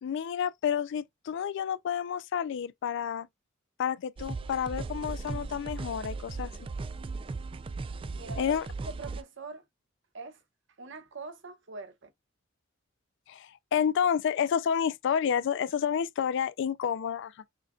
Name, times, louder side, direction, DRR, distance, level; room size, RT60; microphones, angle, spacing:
voice 1, 0.0-3.3 3.8-6.5 8.4-8.6 13.3-17.3, left 8 dB, 65° left, 0.3 m, -30 dB
sound 1, 4.2-9.2, right 3 dB, 25° right, 0.3 m, -37 dB
voice 2, 8.2-8.6 8.9-9.7 10.1-10.4 10.8-12.1, right 4 dB, 65° right, 1.0 m, -43 dB
6.4 x 2.5 x 2.3 m
head